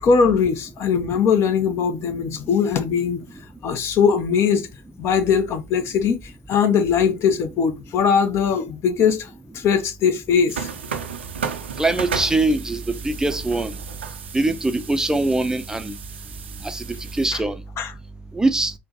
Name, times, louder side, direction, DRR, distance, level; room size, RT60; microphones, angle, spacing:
voice 1, 0.0-3.2 3.6-4.7 5.0-6.2 6.5-9.3 9.5-10.7 17.3-17.4 17.8-17.9, left 6 dB, 45° left, 0.6 m, -20 dB
sound 1, 10.5-17.3, right 6 dB, 80° right, 0.4 m, -34 dB
voice 2, 11.8-13.7 14.3-15.9 16.6-16.8 17.1-17.6 18.3-18.7, right 2 dB, 10° right, 0.5 m, -22 dB
4.3 x 2.1 x 2.7 m
figure-of-eight pair, 60°, 6 cm